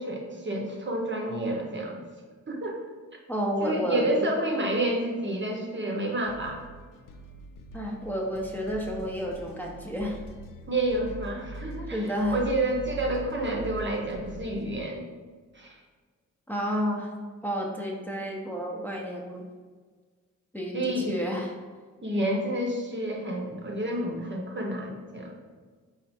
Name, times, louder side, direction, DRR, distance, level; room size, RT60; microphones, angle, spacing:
voice 1, 0.0-2.0 2.5-2.8 3.6-6.6 10.7-15.0 15.5-15.8 20.7-21.1 22.0-25.4, right 1 dB, 35° right, 0 dB, 0.8 m, -29 dB
voice 2, 3.3-4.3 7.7-10.2 11.9-12.4 16.5-17.1 17.4-19.4 20.5-21.5, equal, 5° left, -2 dB, 0.7 m, -30 dB
sound 1, 6.2-14.8, right 1 dB, 85° left, 0.5 m, -43 dB
4.2 x 2.4 x 4.2 m, 1.5 s
cardioid pair, 60°, 32 cm